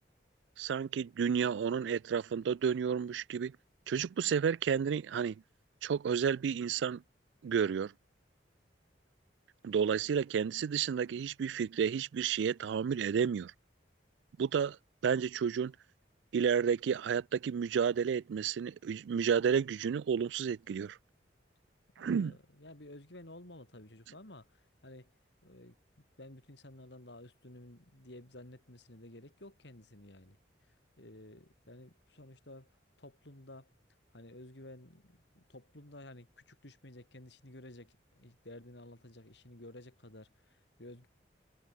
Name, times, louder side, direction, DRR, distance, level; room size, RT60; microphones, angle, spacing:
voice 1, 0.6-3.5 3.9-5.4 5.8-7.0 7.4-7.9 9.6-13.5 14.4-14.8 15.0-15.7 16.3-21.0 22.0-22.4, right 7 dB, 75° right, 0.3 m, -31 dB
voice 2, 22.0-25.1 25.4-25.8 26.2-30.4 31.0-32.7 33.0-33.7 34.1-41.1, left 1 dB, 70° left, 3.7 m, -53 dB
head